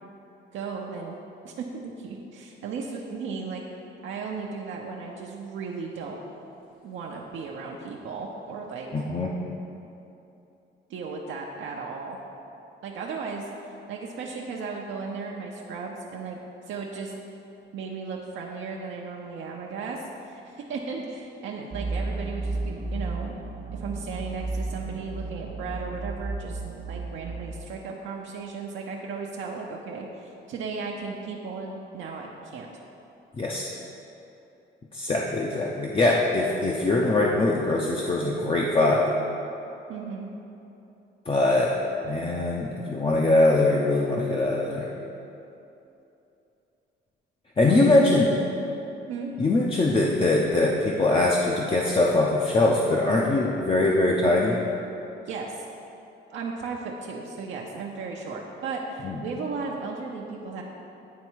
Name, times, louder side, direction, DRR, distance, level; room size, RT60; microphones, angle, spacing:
voice 1, 0.5-1.2 1.4-3.6 4.0-6.2 6.8-8.9 10.9-12.2 12.8-13.5 13.9-16.4 16.7-17.1 17.7-23.3 23.7-26.6 26.9-32.7 39.9-40.3 47.7-48.8 49.1-49.3 55.3-55.6 56.3-60.6, right 4 dB, 75° right, -1 dB, 0.7 m, -35 dB
voice 2, 8.9-9.4 33.4-33.7 34.9-39.1 41.3-41.8 42.0-44.9 47.6-48.3 49.4-54.6 59.0-59.2, left 2 dB, 25° left, -2 dB, 0.6 m, -22 dB
sound 1, 21.7-27.5, right 3 dB, 35° right, 0.6 m, -33 dB
9.3 x 3.2 x 4.6 m, 2.8 s
cardioid pair, 90°, 20 cm